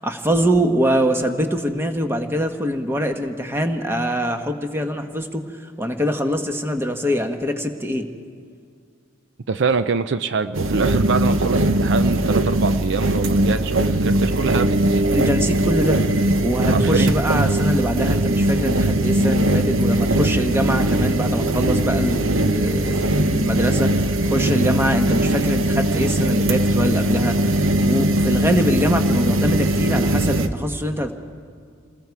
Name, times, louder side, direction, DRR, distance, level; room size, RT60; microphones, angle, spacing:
voice 1, 0.0-5.4 5.8-8.1 15.1-16.0 16.4-27.5 27.8-31.1, equal, 10° right, 5 dB, 1.2 m, -23 dB
voice 2, 9.5-15.0 16.7-17.1, right 5 dB, 60° right, 11 dB, 0.5 m, -24 dB
sound 1, 10.5-30.5, right 1 dB, 75° right, 1.0 m, -20 dB
28.0 x 20.0 x 4.7 m, 2.3 s
head